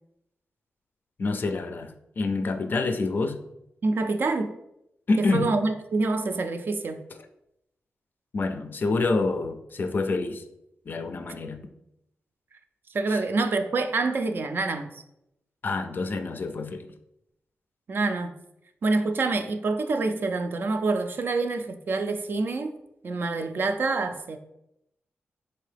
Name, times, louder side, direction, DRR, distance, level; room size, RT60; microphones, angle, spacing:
voice 1, 1.2-3.4 5.1-5.6 8.3-10.4 10.9-11.6 13.1-13.2 15.6-16.9, left 3 dB, 50° left, 7 dB, 0.4 m, -27 dB
voice 2, 3.8-4.5 5.2-7.0 12.9-14.9 17.9-18.4 18.8-22.7 23.0-24.4, right 3 dB, 55° right, 7 dB, 0.4 m, -26 dB
3.8 x 2.7 x 3.3 m, 0.83 s
cardioid pair, 85°, 4 cm